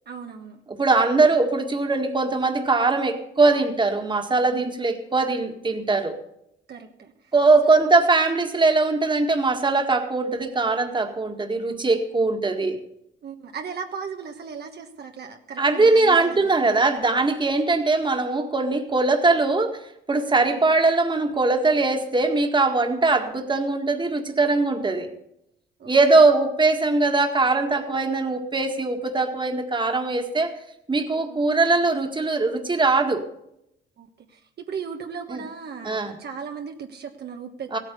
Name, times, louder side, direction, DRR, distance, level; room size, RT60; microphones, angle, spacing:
voice 1, 0.1-0.6 1.0-1.1 4.5-4.8 6.7-7.3 7.6-7.9 13.2-16.7 20.4-20.7 25.8-26.0 31.2-31.5 34.0-37.8, right 6 dB, 55° right, 3 dB, 1.3 m, -37 dB
voice 2, 0.7-6.2 7.3-12.8 15.6-19.8 20.1-25.1 25.9-30.5 30.9-33.2 35.3-35.4 35.8-36.2 37.7-37.8, right 3 dB, 25° right, 5 dB, 1.8 m, -21 dB
15.5 x 8.9 x 6.8 m, 0.81 s
cardioid pair, 90°, 20 cm